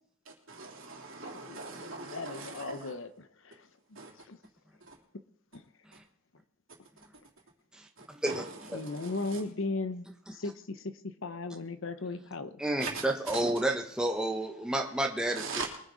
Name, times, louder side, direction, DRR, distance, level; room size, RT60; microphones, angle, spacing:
voice 1, 0.5-2.9 3.9-4.1 4.8-5.0 8.0-9.4 12.8-13.4 15.3-15.7, right 4 dB, 65° right, -1 dB, 3.3 m, -41 dB
voice 2, 1.3-3.7 4.3-4.4 5.5-5.6 8.7-12.6, left 3 dB, 60° left, 11 dB, 0.8 m, -37 dB
voice 3, 7.7-8.4 8.7-8.8 12.6-15.5, right 1 dB, 5° right, 2 dB, 1.0 m, -30 dB
22.5 x 9.8 x 4.0 m, 0.67 s
head